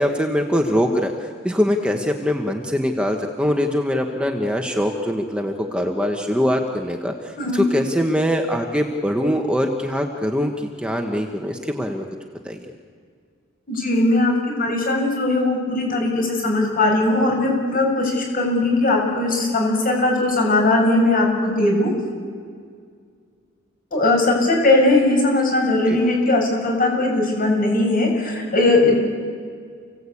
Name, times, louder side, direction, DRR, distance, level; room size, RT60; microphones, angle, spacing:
voice 1, 0.0-12.0 12.4-12.6 25.9-26.0, equal, 5° right, 2 dB, 1.3 m, -23 dB
voice 2, 13.7-14.3 14.6-21.9 23.9-29.0, left 2 dB, 45° left, 1 dB, 7.2 m, -19 dB
29.5 x 17.5 x 8.6 m, 2.1 s
head